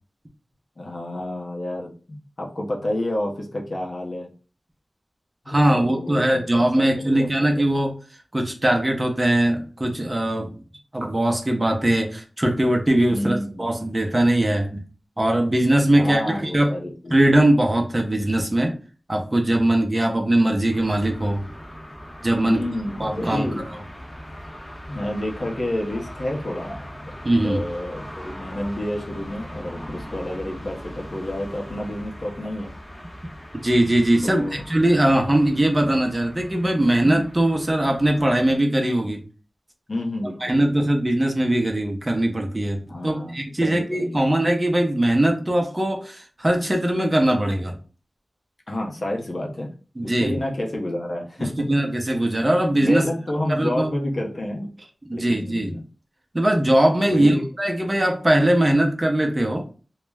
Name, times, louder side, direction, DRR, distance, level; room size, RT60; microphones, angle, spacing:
voice 1, 0.8-4.3 5.5-7.7 13.1-13.7 15.9-17.3 22.4-23.7 24.9-27.1 27.4-32.7 34.2-34.6 39.9-40.7 42.9-44.2 48.7-49.7 50.0-51.5 52.7-54.7 55.1-55.8 57.1-57.4, left 1 dB, 60° left, -1 dB, 0.6 m, -29 dB
voice 2, 5.5-8.0 8.3-10.6 10.9-14.8 15.2-16.7 17.1-18.8 19.1-21.4 22.2-22.6 23.0-23.5 27.2-27.6 33.6-39.2 40.4-47.8 50.0-50.4 51.4-53.0 53.5-53.9 55.1-55.7 56.3-59.6, right 1 dB, 30° right, 2 dB, 0.6 m, -21 dB
sound 1, 20.7-38.6, equal, 15° left, 0.7 m, -40 dB
2.2 x 2.0 x 3.2 m, 0.37 s
wide cardioid pair, 65°, 0 cm